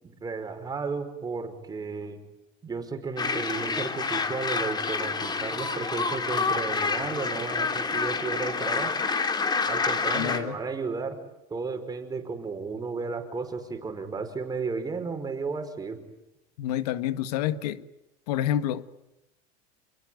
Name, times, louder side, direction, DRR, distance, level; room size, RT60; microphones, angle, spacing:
voice 1, 0.0-2.2 2.6-8.9 9.7-11.2 11.5-16.0, right 4 dB, 20° right, 5.3 m, -33 dB
sound 1, 3.2-10.4, left 4 dB, 20° left, 3.3 m, -28 dB
voice 2, 10.1-10.6 16.6-17.8 18.3-18.9, left 11 dB, 85° left, 1.7 m, -28 dB
28.5 x 21.5 x 9.4 m
supercardioid pair, 125°, 20 cm